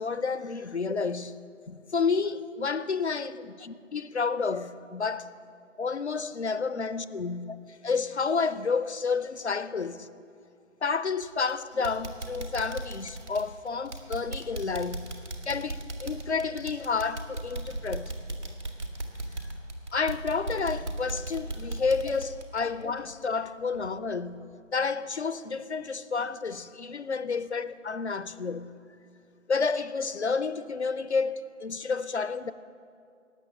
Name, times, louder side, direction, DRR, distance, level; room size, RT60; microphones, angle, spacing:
voice 1, 0.0-1.4 1.7-5.3 5.8-10.1 10.8-15.1 15.5-18.1 19.9-28.7 29.5-32.5, left 5 dB, 60° left, 0.6 m, -30 dB
sound 1, 11.2-11.5 11.8-23.4 23.7-23.9 24.3-24.4, right 2 dB, 65° right, 2.0 m, -37 dB
18.0 x 6.9 x 7.5 m
figure-of-eight pair, 165°, 38 cm